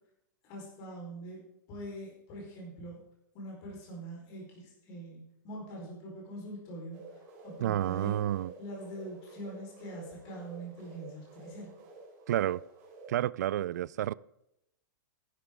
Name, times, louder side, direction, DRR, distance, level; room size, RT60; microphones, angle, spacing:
voice 1, 0.4-3.0 3.3-8.2 8.6-11.7, right 1 dB, 30° left, 4.4 m, -44 dB
sound 1, 6.9-13.1, right 3 dB, 25° right, 3.4 m, -51 dB
voice 2, 7.6-8.5 12.3-12.6 13.1-14.1, right 12 dB, 55° right, 0.4 m, -30 dB
14.5 x 11.0 x 3.7 m
supercardioid pair, 175°, 11 cm